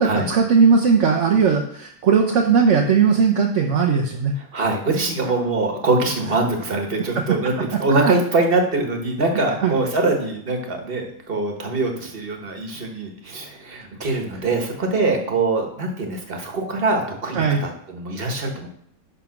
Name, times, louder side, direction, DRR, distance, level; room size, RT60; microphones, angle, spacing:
voice 1, 0.0-4.3 9.6-9.7 17.4-17.6, right 5 dB, 55° right, 2 dB, 0.9 m, -18 dB
voice 2, 4.4-18.7, right 3 dB, 35° right, 3 dB, 1.4 m, -23 dB
11.0 x 3.7 x 5.9 m, 0.67 s
omnidirectional pair, 1.9 m